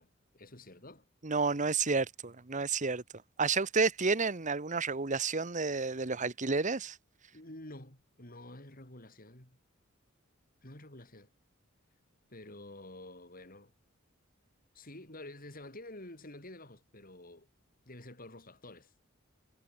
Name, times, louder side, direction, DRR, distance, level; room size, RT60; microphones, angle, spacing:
voice 1, 0.0-1.1 7.3-9.6 10.6-11.3 12.3-13.7 14.7-17.5 17.9-18.9, left 1 dB, 45° left, 6.7 m, -49 dB
voice 2, 1.2-3.0 3.4-7.0, right 4 dB, 35° right, 1.2 m, -30 dB
head